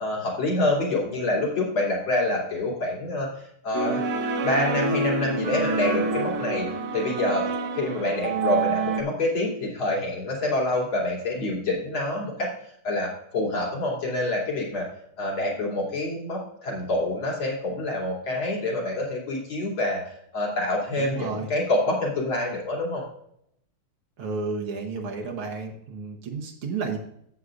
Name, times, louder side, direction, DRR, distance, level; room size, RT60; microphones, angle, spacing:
voice 1, 0.0-3.3 3.6-4.0 4.4-6.7 6.9-7.5 7.8-12.5 12.8-14.9 15.2-20.0 20.3-23.0, left 2 dB, 70° left, -3 dB, 3.7 m, -26 dB
sound 1, 3.7-9.0, right 4 dB, 55° right, 1.3 m, -27 dB
voice 2, 21.0-21.5 24.2-27.0, right 4 dB, 80° right, 1 dB, 1.9 m, -32 dB
14.5 x 8.0 x 2.5 m, 0.72 s
omnidirectional pair, 2.3 m